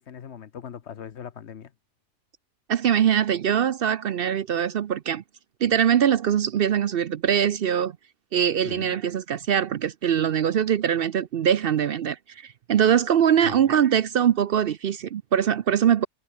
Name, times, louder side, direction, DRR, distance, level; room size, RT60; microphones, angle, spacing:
voice 1, 0.0-1.7 8.6-9.0 13.4-13.8, left 8 dB, 65° left, 1.2 m, -40 dB
voice 2, 2.7-5.2 5.6-7.9 8.3-16.1, right 9 dB, 60° right, 0.7 m, -22 dB
omnidirectional pair, 1.2 m